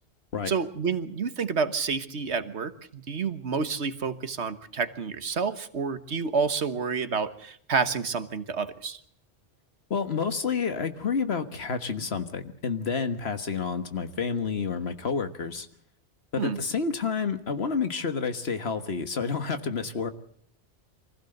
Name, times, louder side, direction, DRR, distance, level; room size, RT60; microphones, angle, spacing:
voice 1, 0.5-9.0 16.3-16.6, right 5 dB, 75° right, 11 dB, 1.6 m, -29 dB
voice 2, 9.9-15.7 16.3-20.1, left 5 dB, 65° left, 9 dB, 1.7 m, -29 dB
25.0 x 15.5 x 7.9 m, 0.63 s
omnidirectional pair, 1.1 m